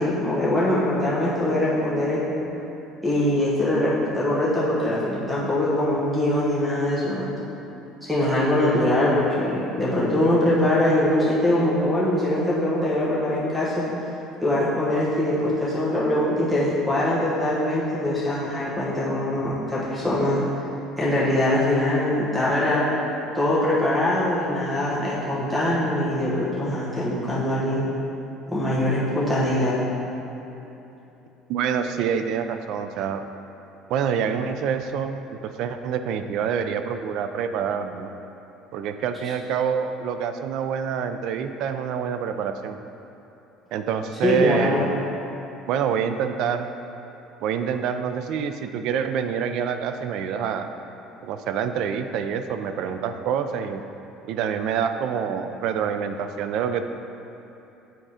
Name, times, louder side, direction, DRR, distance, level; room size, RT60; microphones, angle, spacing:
voice 1, 0.0-2.2 3.0-7.3 8.1-13.8 14.4-20.4 21.0-22.9 23.3-27.8 28.5-29.8 44.2-44.8, left 1 dB, 5° right, -8 dB, 1.2 m, -22 dB
voice 2, 31.5-33.3 33.9-38.1 38.7-42.8 43.7-44.8 45.7-46.7 47.4-50.7 51.2-53.8 54.3-56.8, right 7 dB, 60° right, 8 dB, 0.4 m, -26 dB
7.7 x 3.7 x 4.9 m, 3.0 s
cardioid pair, 155°, 0 cm